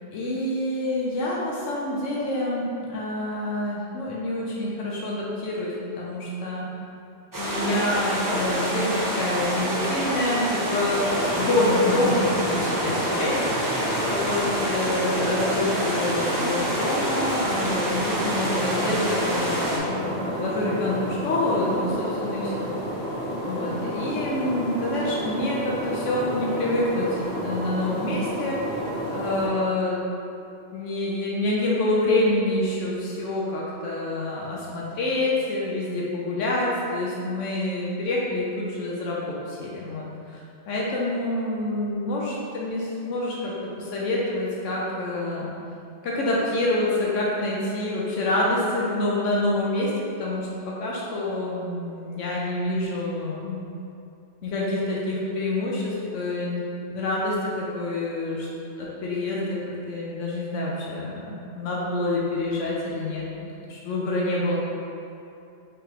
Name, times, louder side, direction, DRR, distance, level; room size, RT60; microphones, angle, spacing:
voice 1, 0.1-6.7 7.4-11.1 11.3-22.7 23.4-28.8 29.1-30.0 30.7-45.5 46.0-49.9 50.2-53.7 54.4-58.5 58.8-59.6 59.9-63.3 63.7-64.6, left 1 dB, 80° left, -5 dB, 1.0 m, -27 dB
sound 1, 7.3-19.8, equal, 25° right, 0.4 m, -27 dB
sound 2, 10.9-29.5, equal, 60° right, 1.5 m, -31 dB
5.0 x 3.4 x 2.9 m, 2.6 s
omnidirectional pair, 1.3 m